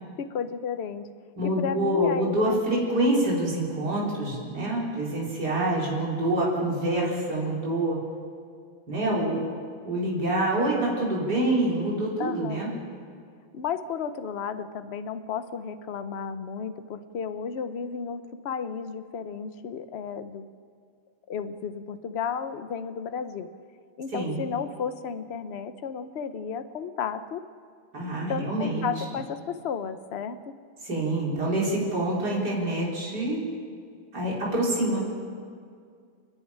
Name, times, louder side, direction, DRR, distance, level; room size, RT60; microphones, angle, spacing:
voice 1, 0.2-1.1 1.4-2.6 9.1-9.5 12.2-12.7 13.5-20.5 21.3-23.5 24.0-27.5 28.3-30.5, left 6 dB, 55° left, 10 dB, 0.7 m, -33 dB
voice 2, 1.4-8.0 8.9-9.4 9.8-12.7 24.1-24.4 27.9-28.9 30.8-33.4 34.1-35.1, right 1 dB, 50° right, -4 dB, 4.9 m, -26 dB
30.0 x 10.5 x 10.0 m, 2.2 s
omnidirectional pair, 2.2 m